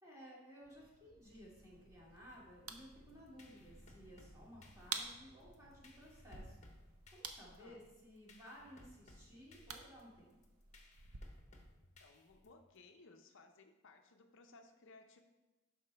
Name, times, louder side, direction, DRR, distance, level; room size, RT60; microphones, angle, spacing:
voice 1, 0.0-6.6 7.1-10.3, equal, 15° right, -6 dB, 2.2 m, -57 dB
Bird vocalization bird call bird song, 0.6-6.4, left 1 dB, 45° right, 1.7 m, -66 dB
sound 1, 1.2-11.2, right 6 dB, 80° right, 0.7 m, -52 dB
sound 2, 3.1-12.8, left 2 dB, 35° left, 0.9 m, -63 dB
voice 2, 7.6-7.9 12.0-15.2, left 3 dB, 60° left, 5 dB, 0.5 m, -61 dB
11.5 x 4.8 x 3.3 m, 1.1 s
head